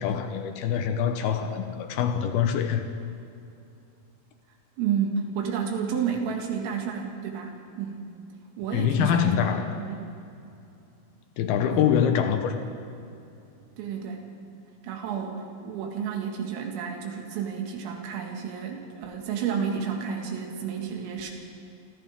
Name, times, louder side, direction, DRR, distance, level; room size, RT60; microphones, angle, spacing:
voice 1, 0.0-2.9 8.7-9.7 11.4-12.6, left 8 dB, 80° left, 6 dB, 2.2 m, -24 dB
voice 2, 4.8-8.0 8.6-10.1 11.7-11.8 13.8-14.2 14.8-21.3, right 7 dB, 85° right, 1 dB, 4.6 m, -31 dB
28.0 x 26.0 x 3.7 m, 2.7 s
omnidirectional pair, 5.9 m